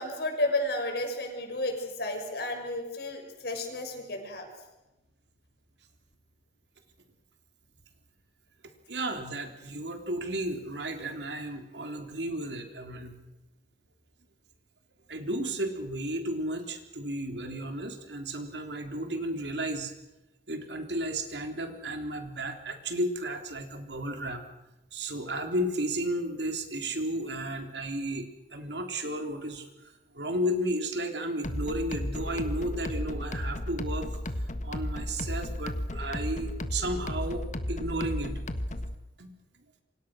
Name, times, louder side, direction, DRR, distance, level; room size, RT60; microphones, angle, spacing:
voice 1, 0.0-4.5, left 1 dB, 60° left, 3 dB, 6.4 m, -32 dB
voice 2, 8.9-13.2 15.1-19.9 20.5-24.4 24.9-34.1 34.6-38.4 39.2-39.3, right 1 dB, 70° right, 5 dB, 3.5 m, -33 dB
sound 1, 31.4-39.0, left 1 dB, 45° left, 1.7 m, -34 dB
28.0 x 25.5 x 6.3 m, 0.99 s
head